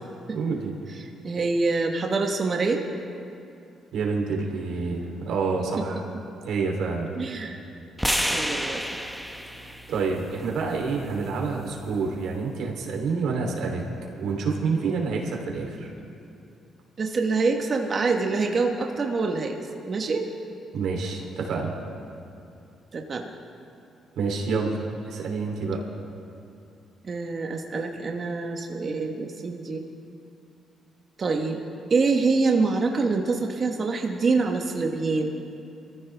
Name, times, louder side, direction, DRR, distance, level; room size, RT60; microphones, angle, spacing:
voice 1, 0.3-0.7 3.9-6.0 6.4-7.1 9.6-13.8 14.2-15.9 20.7-21.8 24.1-25.8, right 4 dB, 75° right, 0 dB, 3.3 m, -28 dB
voice 2, 0.9-2.9 5.8-5.9 7.1-7.6 8.2-9.1 17.0-19.6 19.8-20.3 22.9-23.3 27.0-29.9 31.2-35.4, right 4 dB, 40° right, 2 dB, 1.3 m, -26 dB
sound 1, 8.0-12.2, equal, ahead, 1.1 m, -31 dB
24.0 x 15.0 x 3.5 m, 2.6 s
cardioid pair, 90°, 0 cm